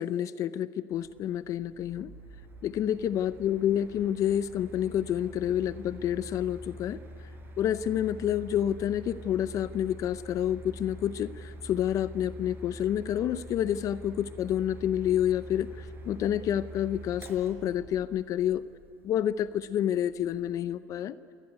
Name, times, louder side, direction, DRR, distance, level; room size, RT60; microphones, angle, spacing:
voice 1, 0.0-2.1 2.6-7.0 7.6-18.6 19.0-21.1, left 10 dB, 45° left, 14 dB, 0.6 m, -29 dB
Mechanical fan, 0.9-20.6, equal, 25° right, 5.3 m, -46 dB
27.0 x 18.5 x 9.5 m, 2.7 s
supercardioid pair, 110°, 8 cm